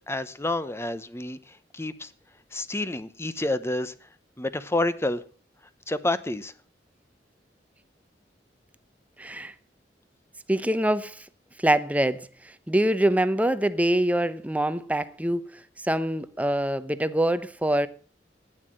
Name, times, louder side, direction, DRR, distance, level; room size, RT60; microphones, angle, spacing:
voice 1, 0.1-1.4 1.7-2.1 2.5-3.9 4.4-5.2 5.9-6.5, left 2 dB, 15° left, 0.9 m, -28 dB
voice 2, 9.2-9.5 10.5-11.3 11.6-17.9, right 1 dB, 10° right, 0.8 m, -25 dB
12.0 x 9.7 x 7.5 m
head